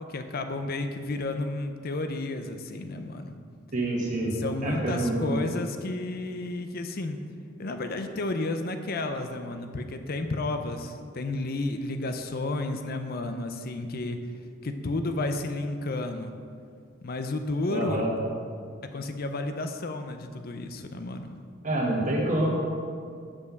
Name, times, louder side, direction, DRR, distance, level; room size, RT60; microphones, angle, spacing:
voice 1, 0.0-3.3 4.3-7.2 7.6-14.2 14.6-16.3 17.0-18.1 18.9-21.4, left 2 dB, 45° left, 7 dB, 0.6 m, -32 dB
voice 2, 3.7-4.3 4.6-5.4 17.7-18.1 21.6-22.5, right 1 dB, 40° right, -2 dB, 1.6 m, -27 dB
7.1 x 5.6 x 6.5 m, 2.2 s
head